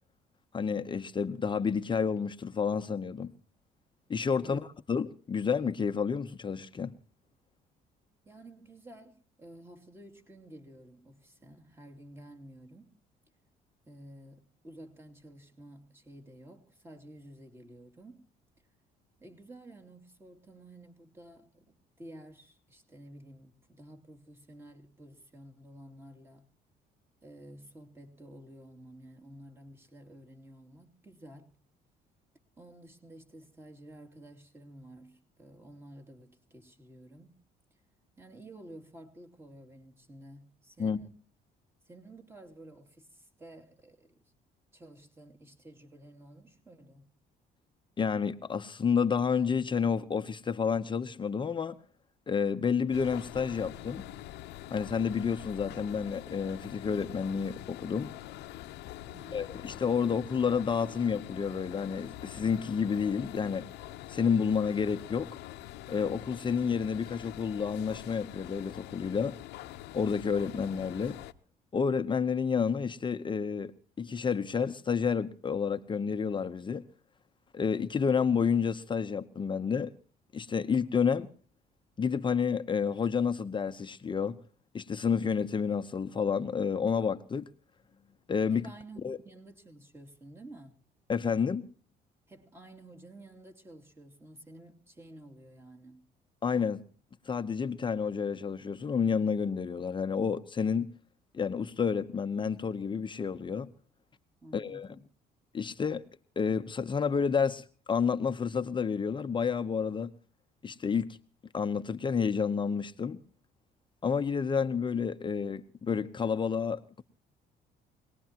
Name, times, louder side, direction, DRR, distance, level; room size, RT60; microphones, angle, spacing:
voice 1, 0.5-3.3 4.1-4.6 4.9-6.9 40.8-41.0 48.0-51.8 52.3-54.0 54.7-58.1 59.3-63.7 64.1-65.3 65.9-69.4 69.9-71.2 71.7-76.9 77.5-79.9 80.3-81.3 82.0-84.4 84.7-87.5 88.3-88.6 89.0-89.2 91.1-91.7 96.4-96.8 97.2-100.9 101.3-103.7 104.5-104.9 105.5-106.0 106.4-110.1 110.6-111.2 111.5-113.2 114.0-117.0, left 6 dB, 30° left, 0.9 m, -30 dB
voice 2, 8.2-12.9 13.8-18.2 19.2-26.5 27.2-31.5 32.6-37.3 37.7-37.8 38.2-41.1 41.8-44.3 44.7-47.1 59.1-59.6 88.5-90.7 92.3-96.1 104.4-105.0, right 1 dB, 15° right, 2.8 m, -52 dB
sound 1, 52.9-71.3, left 14 dB, 80° left, 0.9 m, -45 dB
25.0 x 19.5 x 2.9 m
cardioid pair, 110°, 17 cm